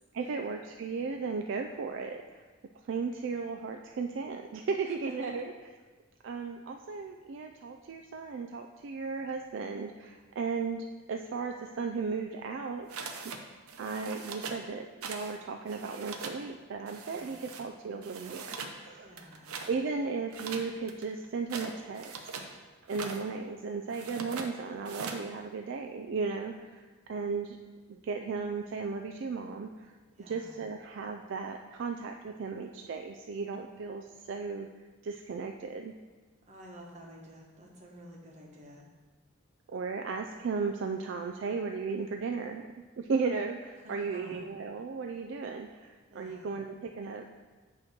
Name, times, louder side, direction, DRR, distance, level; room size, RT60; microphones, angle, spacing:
voice 1, 0.1-2.4 2.8-5.5 6.2-13.3 13.8-19.1 19.7-22.1 22.5-27.6 27.9-29.9 30.3-34.7 35.0-35.9 39.7-42.6 43.0-47.3, right 4 dB, 60° right, 4 dB, 0.3 m, -35 dB
sound 1, 12.9-13.4 13.7-14.6 15.0-15.4 15.6-16.4 16.9-17.6 18.0-18.8 19.1-19.7 20.3-22.5 22.8-23.2 23.9-24.5 24.8-25.2, right 4 dB, 90° right, 0.7 m, -41 dB
voice 2, 17.0-17.4 19.0-19.6 30.2-30.6 36.5-38.8 43.8-44.4 46.1-46.5, right 1 dB, 30° right, -1 dB, 1.1 m, -50 dB
8.9 x 3.0 x 5.8 m, 1.3 s
head